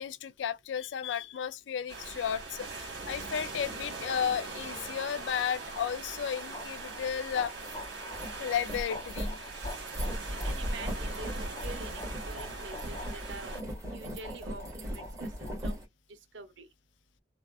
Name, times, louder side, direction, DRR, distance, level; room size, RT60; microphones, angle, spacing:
voice 1, 0.0-7.5 8.4-9.4, left 8 dB, 85° left, 0.3 m, -33 dB
sound 1, 1.9-13.6, right 3 dB, 70° right, 1.6 m, -42 dB
sound 2, 4.0-15.6, left 2 dB, 30° left, 0.8 m, -48 dB
sound 3, 7.5-15.8, equal, 15° right, 1.7 m, -38 dB
voice 2, 10.4-13.6 13.9-15.8 16.3-16.7, right 3 dB, 90° right, 0.8 m, -46 dB
3.4 x 2.3 x 2.4 m
head